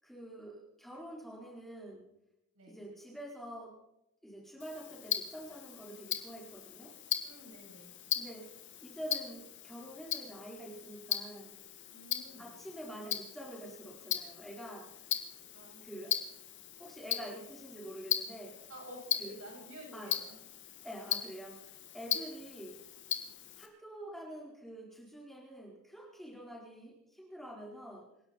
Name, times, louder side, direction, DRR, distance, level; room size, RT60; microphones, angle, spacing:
voice 1, 0.0-2.1 2.7-3.8 4.2-6.9 8.1-8.5 8.8-11.5 12.4-15.2 15.8-16.2 16.8-18.6 19.2-19.4 19.9-20.1 20.8-22.8 23.6-28.0, right 1 dB, ahead, -3 dB, 4.4 m, -47 dB
Tick-tock, 4.6-23.7, left 10 dB, 55° left, 1.9 m, -39 dB
voice 2, 7.2-7.9 11.9-12.6 15.5-15.9 18.7-20.4, right 1 dB, 70° right, -1 dB, 7.1 m, -51 dB
27.5 x 11.5 x 4.3 m, 0.82 s
head